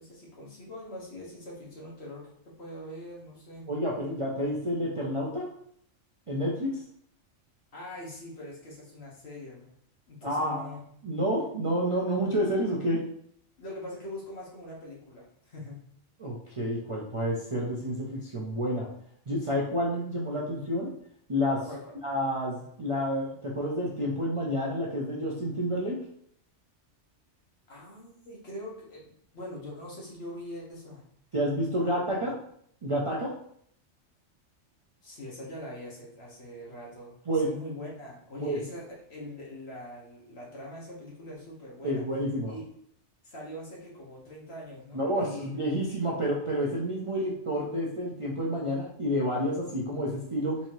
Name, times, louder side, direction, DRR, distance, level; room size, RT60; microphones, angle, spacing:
voice 1, 0.0-3.7 7.7-9.8 10.1-10.8 12.1-12.2 13.6-15.8 21.7-21.9 27.7-31.0 31.8-32.3 35.0-42.0 42.5-42.6 43.2-45.5 47.1-47.3, left 1 dB, 60° left, -4 dB, 1.4 m, -43 dB
voice 2, 3.7-5.5 6.3-6.8 10.2-10.7 11.0-13.0 16.2-18.9 19.3-20.9 21.3-21.7 22.0-26.0 31.3-32.3 32.8-33.3 37.3-37.5 38.4-38.6 41.8-42.5 44.9-50.6, equal, 40° right, -4 dB, 0.5 m, -29 dB
4.1 x 2.7 x 3.0 m, 0.66 s
omnidirectional pair, 1.2 m